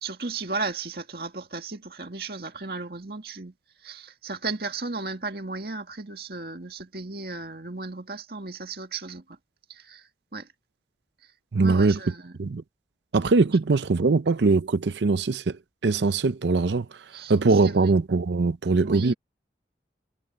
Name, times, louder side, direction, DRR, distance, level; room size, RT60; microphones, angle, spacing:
voice 1, 0.0-3.5 3.8-9.2 9.7-10.5 11.6-12.4 17.1-18.0 18.8-19.1, right 3 dB, 60° right, 2.1 m, -35 dB
voice 2, 11.5-12.0 12.4-12.6 13.1-15.6 15.8-16.9 17.3-19.1, right 3 dB, 80° right, 0.6 m, -21 dB
head